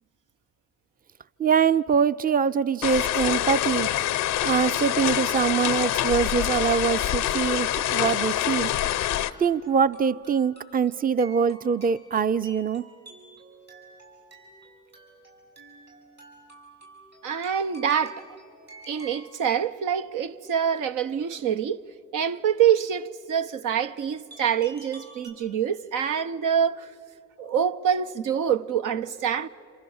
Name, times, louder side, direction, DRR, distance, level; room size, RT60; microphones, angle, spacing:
voice 1, 1.4-3.9 4.4-8.7 9.4-12.8, right 6 dB, 30° right, 0.5 m, -23 dB
sound 1, 2.8-9.3, left 13 dB, 90° left, 0.6 m, -25 dB
sound 2, 8.4-19.4 24.3-25.3, right 2 dB, 60° right, 7.7 m, -50 dB
voice 2, 17.2-18.2 18.9-26.9 27.4-29.5, right 8 dB, 80° right, 0.7 m, -26 dB
27.0 x 26.5 x 7.1 m
supercardioid pair, 45°, 31 cm